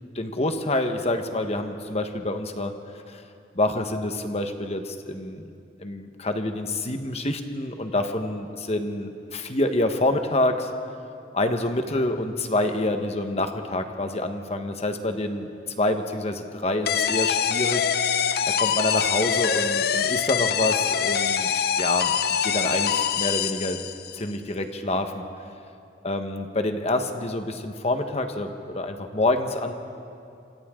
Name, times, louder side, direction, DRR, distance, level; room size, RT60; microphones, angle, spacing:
voice 1, 0.1-3.2 3.5-5.5 5.8-10.7 11.3-15.5 15.8-17.9 18.5-23.8 24.1-25.2 26.0-29.7, left 2 dB, 35° left, 6 dB, 1.3 m, -27 dB
sound 1, 16.9-24.2, left 7 dB, 60° left, 0.6 m, -24 dB
27.5 x 25.5 x 3.8 m, 2.5 s
head